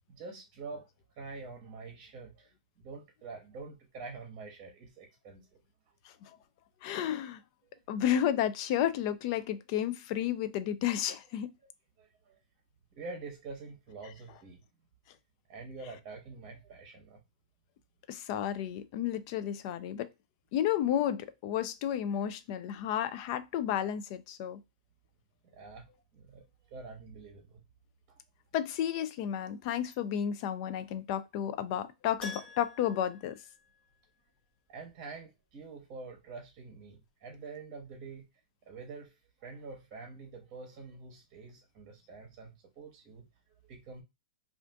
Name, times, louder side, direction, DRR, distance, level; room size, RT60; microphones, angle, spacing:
voice 1, 0.1-5.6 7.6-8.0 11.6-11.7 12.0-12.4 12.9-14.6 15.5-17.2 25.5-25.9 26.1-27.6 28.1-28.2 34.7-38.3 38.7-43.3 43.6-44.0, right 4 dB, 30° right, 0.9 m, -46 dB
voice 2, 6.8-7.4 7.9-11.5 18.1-20.1 20.5-24.6 28.5-33.4, left 10 dB, 40° left, 0.3 m, -32 dB
Keyboard (musical), 32.2-34.3 34.5-34.6 37.3-37.4 37.6-37.7, left 4 dB, 15° left, 0.7 m, -47 dB
2.5 x 2.4 x 3.3 m
hypercardioid pair, 150°, 5 cm